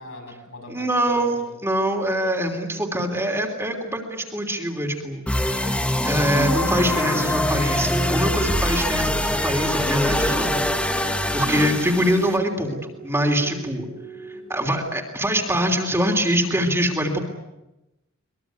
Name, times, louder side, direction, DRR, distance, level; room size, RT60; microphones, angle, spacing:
voice 1, 0.0-1.6, left 1 dB, 75° left, 1 dB, 7.1 m, -41 dB
voice 2, 0.7-13.9 14.2-17.2, equal, 15° right, 2 dB, 3.2 m, -24 dB
sound 1, 5.3-12.4, left 1 dB, 5° left, 1.3 m, -23 dB
sound 2, 6.6-14.7, right 2 dB, 90° right, 7.2 m, -41 dB
23.5 x 21.5 x 9.4 m, 0.97 s
head